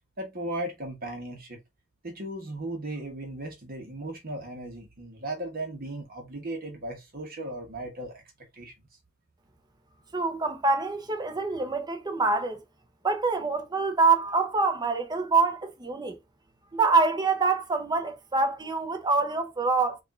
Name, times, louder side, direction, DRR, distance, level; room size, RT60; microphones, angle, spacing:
voice 1, 0.2-1.6 2.0-8.2 8.5-8.7, right 1 dB, 45° right, 1.1 m, -36 dB
voice 2, 10.1-12.6 13.0-16.2 16.7-20.0, right 4 dB, 20° right, 0.7 m, -25 dB
5.1 x 2.5 x 2.5 m
head